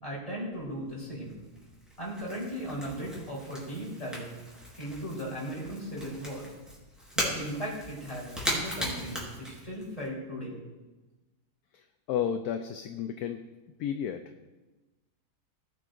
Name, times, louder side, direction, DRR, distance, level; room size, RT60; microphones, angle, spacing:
voice 1, 0.0-1.3 2.0-4.3 4.8-6.4 7.1-10.5, equal, 20° left, -5 dB, 4.2 m, -37 dB
Crackle / Crack, 0.5-10.1, equal, ahead, 3.9 m, -39 dB
voice 2, 11.7-13.4 13.8-14.2, left 9 dB, 70° left, 7 dB, 1.0 m, -32 dB
19.0 x 9.5 x 2.6 m, 1.1 s
omnidirectional pair, 1.9 m